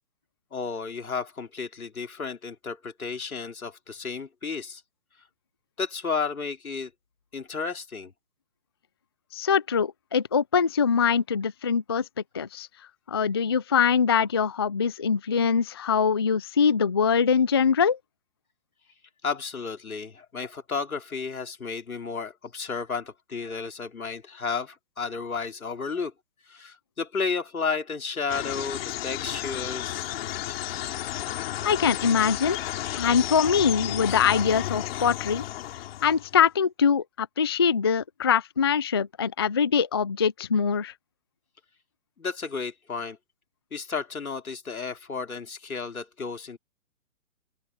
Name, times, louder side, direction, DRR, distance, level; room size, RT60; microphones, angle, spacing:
voice 1, 0.5-4.8 5.8-6.9 7.3-8.1 19.2-26.1 26.5-30.1 42.2-43.2 43.7-46.6, left 5 dB, 75° left, 3.8 m, -32 dB
voice 2, 9.3-12.1 12.3-12.7 13.1-18.0 31.6-32.6 32.9-35.4 36.0-40.9, left 6 dB, 20° left, 0.4 m, -23 dB
sound 1, 28.3-36.4, left 13 dB, 40° left, 4.3 m, -33 dB
open air
figure-of-eight pair, 135°, 43 cm